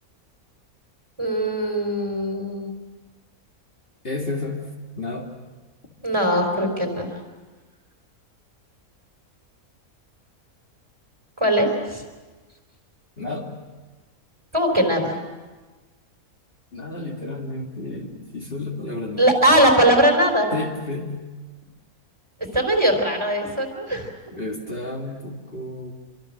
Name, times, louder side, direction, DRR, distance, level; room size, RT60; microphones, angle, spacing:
voice 1, 1.2-2.8 6.0-7.1 11.4-12.0 14.5-15.2 19.2-20.5 22.5-24.1, right 1 dB, 20° right, 3 dB, 3.8 m, -20 dB
voice 2, 4.0-4.7 5.0-5.3 5.8-6.0 13.2-13.6 16.7-19.3 20.5-21.2 21.6-21.7 24.3-25.9, left 2 dB, 40° left, -1 dB, 2.4 m, -31 dB
27.5 x 24.5 x 6.5 m, 1.3 s
omnidirectional pair, 1.5 m